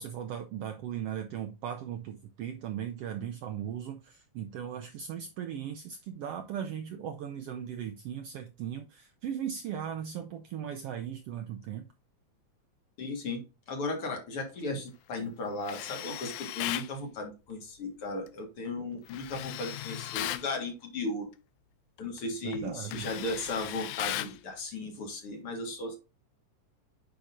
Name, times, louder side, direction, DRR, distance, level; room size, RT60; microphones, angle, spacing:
voice 1, 0.0-11.9 22.4-23.1, right 9 dB, 75° right, 1.4 m, -38 dB
voice 2, 13.0-13.4 13.7-21.3 22.0-26.0, left 2 dB, 55° left, 2.3 m, -36 dB
Tools, 15.6-16.9 19.1-20.5 22.0-22.2 22.5-24.4, left 14 dB, 90° left, 2.0 m, -37 dB
8.7 x 5.4 x 2.6 m
omnidirectional pair, 3.3 m